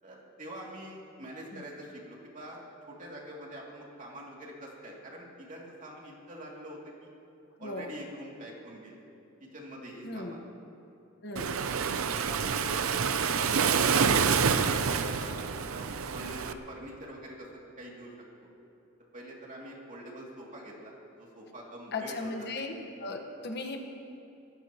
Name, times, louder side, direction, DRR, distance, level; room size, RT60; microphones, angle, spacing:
voice 1, 0.0-2.6 2.9-7.1 7.6-9.0 9.4-10.4 12.1-13.0 13.2-18.5 19.1-22.5, right 1 dB, 40° right, -3 dB, 2.7 m, -45 dB
voice 2, 7.6-7.9 10.0-10.4 11.2-11.6 21.9-22.7 23.0-23.8, left 3 dB, 55° left, 3 dB, 1.4 m, -37 dB
Waves surf, 11.4-16.5, right 6 dB, 85° right, 0.6 m, -27 dB
25.0 x 15.0 x 3.0 m, 2.8 s
head